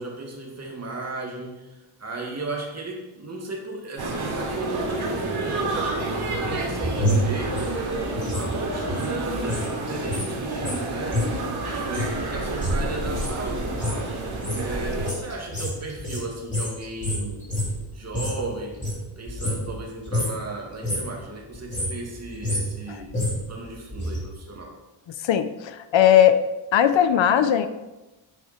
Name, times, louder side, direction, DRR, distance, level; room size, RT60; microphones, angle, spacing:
voice 1, 0.0-7.8 8.3-11.3 11.7-14.0 14.5-17.4 17.9-18.8 19.2-23.1 23.5-24.8, right 2 dB, 30° right, 0 dB, 2.3 m, -35 dB
sound 1, 4.0-15.1, right 2 dB, 50° right, 2.9 m, -29 dB
sound 2, 6.2-9.7 10.0-18.5 18.7-19.8 20.1-20.4 20.7-21.2 21.5-24.2 24.5-24.6, equal, 15° left, 3.7 m, -29 dB
voice 2, 25.2-26.4 26.7-27.7, left 10 dB, 65° left, 11 dB, 0.8 m, -18 dB
10.5 x 9.3 x 4.4 m, 1.0 s
wide cardioid pair, 155°, 49 cm